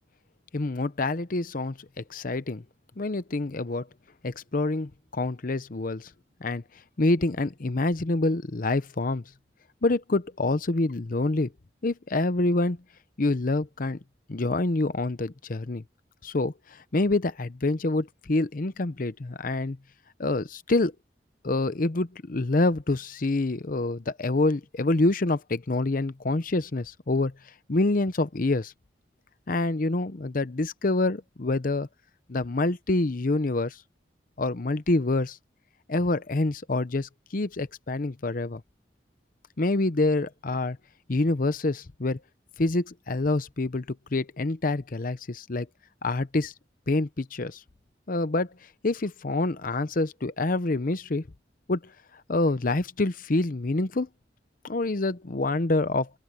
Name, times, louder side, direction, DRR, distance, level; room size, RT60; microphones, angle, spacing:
voice 1, 0.5-2.6 3.0-3.9 4.2-6.1 6.4-6.6 7.0-9.2 9.8-11.5 11.8-12.8 13.2-14.0 14.3-15.8 16.2-19.8 20.2-20.9 21.4-27.3 27.7-28.7 29.5-31.9 32.3-33.8 34.4-35.4 35.9-38.6 39.6-40.8 41.1-42.2 42.6-45.7 46.0-46.5 46.9-47.6 48.1-48.5 48.8-51.2 51.7-51.8 52.3-54.1 54.6-56.1, left 2 dB, 50° left, 0.8 m, -26 dB
open air
head